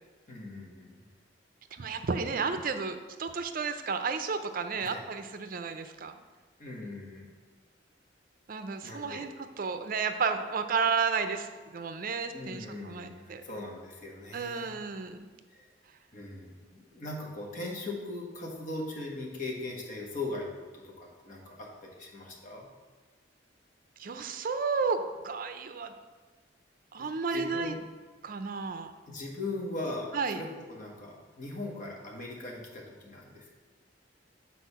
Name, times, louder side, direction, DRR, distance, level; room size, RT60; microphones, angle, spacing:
voice 1, 0.3-1.1 4.7-5.0 6.6-7.3 8.8-9.3 12.3-14.7 15.5-15.7 16.1-22.7 27.0-27.8 29.1-33.5, left 2 dB, 45° left, -1 dB, 1.3 m, -40 dB
voice 2, 1.7-6.2 8.5-9.3 9.6-13.4 14.3-15.3 24.0-25.9 26.9-27.7 28.2-28.9 30.1-30.4, right 5 dB, 50° right, 8 dB, 0.5 m, -32 dB
6.4 x 4.3 x 5.6 m, 1.4 s
head